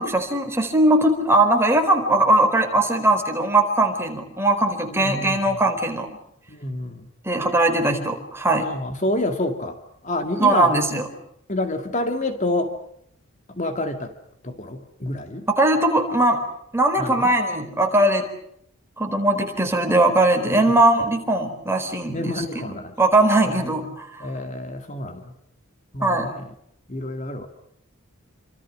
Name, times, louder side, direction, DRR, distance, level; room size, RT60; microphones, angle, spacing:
voice 1, 0.0-6.1 7.2-8.7 10.4-11.0 15.5-16.4 16.7-18.3 19.0-22.6 23.0-24.1 26.0-26.3, right 2 dB, 10° right, 4 dB, 4.3 m, -20 dB
voice 2, 4.9-5.6 6.5-7.1 8.6-9.8 10.0-10.7 11.5-12.8 13.5-14.1 14.4-15.5 17.0-17.3 20.5-20.8 22.1-22.9 23.4-25.3 25.9-26.5 26.9-27.5, left 1 dB, 35° left, 6 dB, 2.4 m, -28 dB
29.0 x 26.0 x 6.4 m, 0.72 s
head